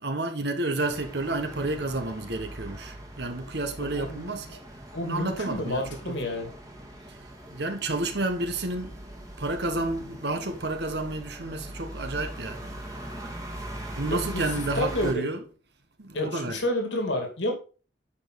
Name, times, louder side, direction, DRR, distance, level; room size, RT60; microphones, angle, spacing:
voice 1, 0.0-4.6 5.0-6.2 7.5-9.0 9.4-12.7 14.0-15.4 16.0-16.6, right 2 dB, 60° right, 1.3 m, -30 dB
sound 1, 0.8-15.1, right 1 dB, 20° right, 1.7 m, -41 dB
voice 2, 3.9-4.6 4.9-6.5 14.1-14.4 14.7-15.3 16.1-17.5, left 1 dB, 75° left, 2.5 m, -30 dB
10.0 x 5.3 x 4.1 m
head